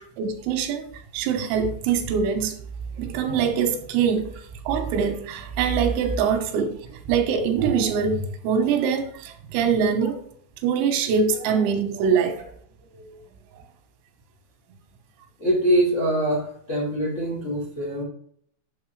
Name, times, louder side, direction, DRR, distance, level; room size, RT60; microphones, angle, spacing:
voice 1, 0.2-2.6 3.0-4.3 4.7-10.2 10.6-12.5 12.9-13.2, right 6 dB, 90° right, 6 dB, 3.9 m, -23 dB
voice 2, 15.4-18.0, right 1 dB, 40° left, -4 dB, 1.0 m, -23 dB
9.4 x 7.4 x 3.3 m, 0.63 s
omnidirectional pair, 5.9 m